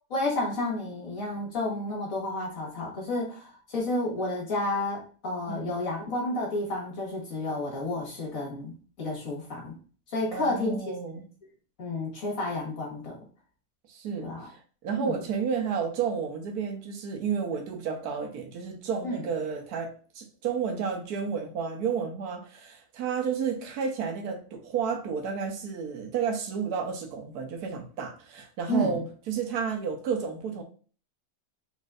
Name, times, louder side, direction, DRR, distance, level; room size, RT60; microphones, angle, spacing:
voice 1, 0.1-9.7 10.1-10.8 11.8-13.2 14.2-14.4 15.0-15.2 19.0-19.2 28.7-29.0, left 2 dB, 65° left, 2.0 m, -31 dB
voice 2, 10.3-11.3 13.9-30.6, right 6 dB, 80° right, 1.3 m, -31 dB
4.1 x 3.8 x 2.5 m
omnidirectional pair, 1.6 m